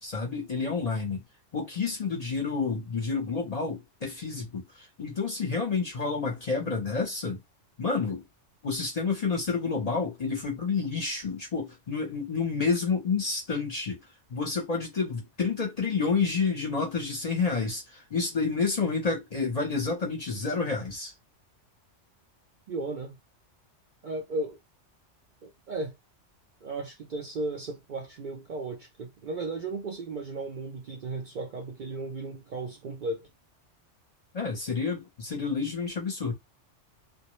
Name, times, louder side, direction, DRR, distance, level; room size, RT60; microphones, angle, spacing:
voice 1, 0.0-1.2 1.5-7.4 7.8-8.2 8.6-14.0 14.3-21.1 34.3-36.3, left 4 dB, 40° left, 0.6 m, -29 dB
voice 2, 22.7-23.2 24.0-24.6 25.4-26.0 26.6-33.3, right 2 dB, 55° right, 0.5 m, -35 dB
2.1 x 2.1 x 3.0 m
omnidirectional pair, 1.2 m